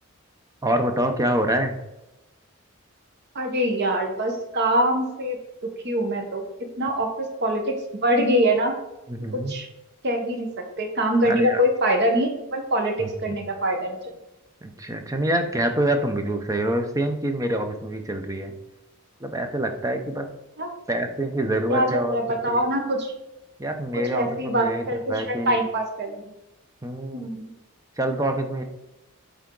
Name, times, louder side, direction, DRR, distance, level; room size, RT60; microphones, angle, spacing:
voice 1, 0.6-1.8 9.1-9.5 11.2-11.6 13.0-13.4 14.6-18.5 19.2-20.3 20.9-22.6 23.6-25.6 26.8-27.3 28.0-28.6, right 1 dB, 15° right, 6 dB, 0.6 m, -26 dB
voice 2, 3.3-5.4 5.8-6.4 6.8-8.8 9.5-9.7 10.0-10.5 10.8-14.0 20.6-20.7 21.7-23.1 23.9-26.2 27.1-27.5, right 1 dB, 50° right, 4 dB, 1.0 m, -24 dB
8.5 x 3.5 x 3.8 m, 0.95 s
head